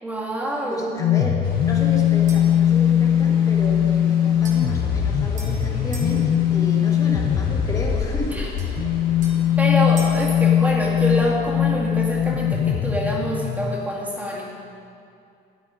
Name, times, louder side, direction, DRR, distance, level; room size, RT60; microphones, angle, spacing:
voice 1, 0.0-1.0 8.3-8.5 9.6-14.6, equal, 10° right, -3 dB, 2.1 m, -26 dB
voice 2, 0.7-8.4, left 1 dB, 20° left, -1 dB, 1.8 m, -33 dB
sound 1, 1.0-13.8, left 9 dB, 75° left, 0.8 m, -20 dB
sound 2, 1.4-12.9, left 3 dB, 55° left, 1.8 m, -39 dB
sound 3, 2.3-2.6 4.4-6.2 8.6-10.3, right 3 dB, 45° right, 2.0 m, -42 dB
14.0 x 10.0 x 5.2 m, 2.5 s
cardioid pair, 170°, 18 cm